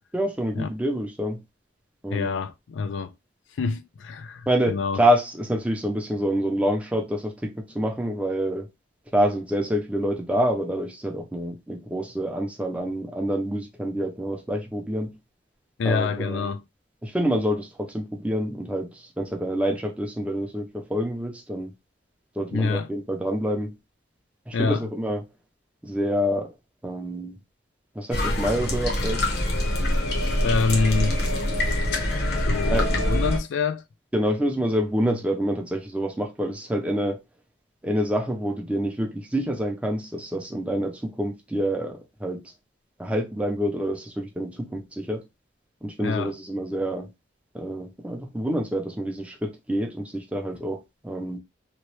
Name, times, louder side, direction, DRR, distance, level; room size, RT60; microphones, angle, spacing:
voice 1, 0.1-1.4 2.0-2.4 4.5-8.7 9.1-15.2 15.8-16.5 17.0-21.7 22.4-23.8 24.5-25.2 25.8-26.5 26.8-27.4 28.0-29.4 32.7-33.0 34.1-37.2 37.8-42.4 43.0-45.2 45.8-47.1 47.5-51.4, equal, 5° right, 0.5 m, -27 dB
voice 2, 2.1-3.1 3.6-5.0 15.8-16.6 22.5-22.9 24.5-24.8 30.4-31.2 31.6-32.1 32.5-33.8 35.0-35.2 46.0-46.3, left 4 dB, 80° left, 0.4 m, -26 dB
sound 1, 28.1-33.4, left 1 dB, 60° left, 0.9 m, -24 dB
2.9 x 2.2 x 3.0 m
head